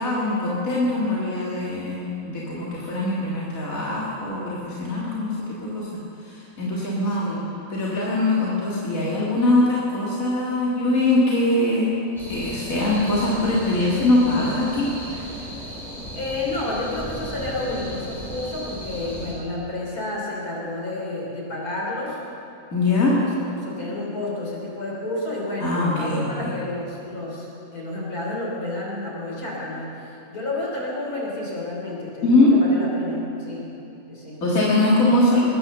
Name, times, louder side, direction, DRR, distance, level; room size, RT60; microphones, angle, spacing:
voice 1, 0.0-5.9 6.2-7.3 7.7-11.9 12.3-15.4 22.7-23.2 25.6-26.5 32.2-32.5 34.4-35.4, left 2 dB, 65° left, -6 dB, 2.5 m, -22 dB
voice 2, 7.1-7.5 16.1-22.2 23.2-33.7 34.1-34.4, left 2 dB, 85° left, -4 dB, 4.2 m, -30 dB
sound 1, 12.2-19.4, equal, ahead, 3.6 m, -35 dB
21.0 x 9.7 x 6.7 m, 2.8 s
omnidirectional pair, 1.5 m